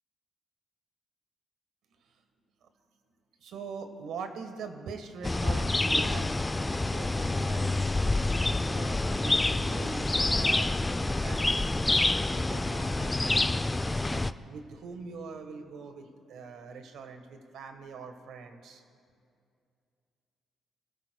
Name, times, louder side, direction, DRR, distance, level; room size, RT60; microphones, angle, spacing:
voice 1, 3.4-6.3 6.6-7.7 8.6-11.8 12.2-13.6 14.1-18.8, right 5 dB, 80° right, 7 dB, 1.2 m, -43 dB
sound 1, 5.2-14.3, left 2 dB, 15° left, 0.3 m, -27 dB
25.0 x 13.5 x 2.2 m, 2.4 s
cardioid pair, 90°, 0 cm